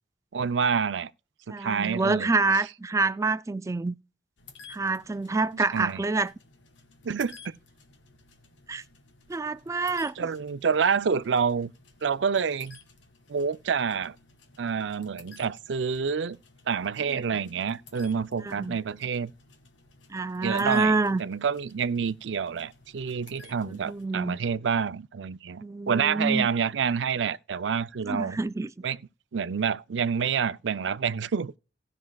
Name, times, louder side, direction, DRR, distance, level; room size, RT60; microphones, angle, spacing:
voice 1, 0.3-1.1 1.5-2.3 5.7-6.0 7.0-7.5 10.2-11.7 12.0-12.8 13.3-14.1 14.6-16.4 16.7-19.3 20.4-28.4 28.8-29.0 29.3-31.5, right 6 dB, 75° right, 0.5 m, -28 dB
voice 2, 1.5-4.0 4.7-6.3 8.7-8.8 9.3-10.1 18.4-18.8 20.1-21.2 23.6-24.4 25.6-26.5 28.1-28.7, right 3 dB, 15° right, 0.3 m, -27 dB
sound 1, 4.4-24.1, left 4 dB, 80° left, 1.8 m, -55 dB
18.0 x 6.2 x 2.3 m
head